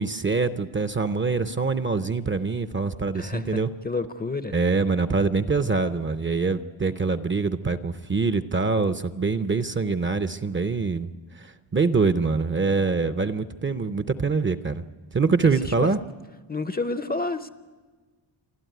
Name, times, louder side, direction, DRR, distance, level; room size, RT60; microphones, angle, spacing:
voice 1, 0.0-3.7 4.5-11.1 11.4-14.8 15.1-16.0, right 4 dB, 25° right, 12 dB, 0.6 m, -24 dB
voice 2, 3.1-4.5 15.6-15.9 16.5-17.5, left 3 dB, 20° left, 13 dB, 0.6 m, -30 dB
28.5 x 12.0 x 9.2 m, 1.4 s
wide cardioid pair, 160°, 46 cm